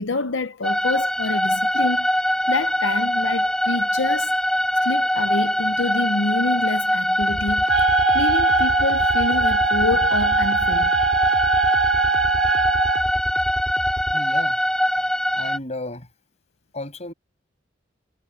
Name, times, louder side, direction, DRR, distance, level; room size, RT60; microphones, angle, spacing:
voice 1, 0.0-2.1 2.5-4.3 4.8-7.9 8.1-10.9, left 3 dB, 90° left, 0.8 m, -27 dB
sound 1, 0.6-15.6, equal, 5° left, 0.7 m, -22 dB
sound 2, 7.2-14.2, equal, 15° right, 2.6 m, -33 dB
Wind instrument woodwind instrument, 7.7-13.1, right 6 dB, 70° right, 0.5 m, -22 dB
voice 2, 14.1-14.6 15.3-16.1 16.7-17.1, left 2 dB, 35° left, 7.2 m, -33 dB
head